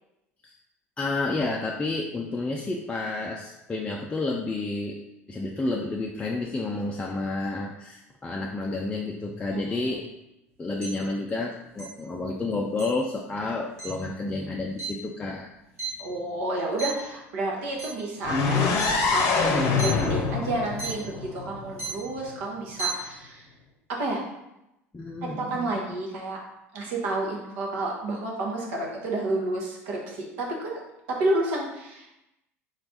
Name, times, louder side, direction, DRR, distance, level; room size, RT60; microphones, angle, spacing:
voice 1, 1.0-5.0 5.3-10.1 10.6-15.5 24.9-26.0, left 2 dB, 15° left, -1 dB, 0.5 m, -30 dB
sound 1, 10.8-10.9 11.8-11.9 12.8-12.9 13.8-13.9 14.8-14.9 15.3-16.4 16.8-17.1 17.7-18.0 18.8-18.9 19.6-19.9 20.8-20.9 21.7-22.0 22.6-22.9, right 5 dB, 80° right, 1.3 m, -33 dB
voice 2, 16.0-18.7 19.1-23.5 23.9-24.2 25.4-26.4 26.7-30.8 31.1-32.1, right 2 dB, 60° right, -1 dB, 1.0 m, -30 dB
sound 2, 18.2-22.1, left 4 dB, 45° left, 0.7 m, -25 dB
3.9 x 3.4 x 4.0 m, 0.89 s
figure-of-eight pair, 70°, 8 cm